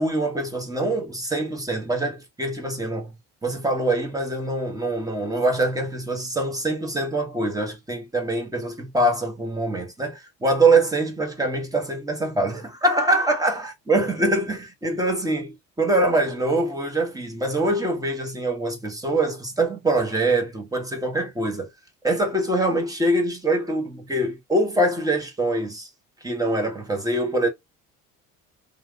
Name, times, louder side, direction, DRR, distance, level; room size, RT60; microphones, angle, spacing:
voice 1, 0.0-3.1 3.4-21.7 22.0-25.9 26.2-27.5, right 2 dB, 10° right, 1.3 m, -24 dB
3.2 x 2.5 x 2.2 m
supercardioid pair, 75°, 37 cm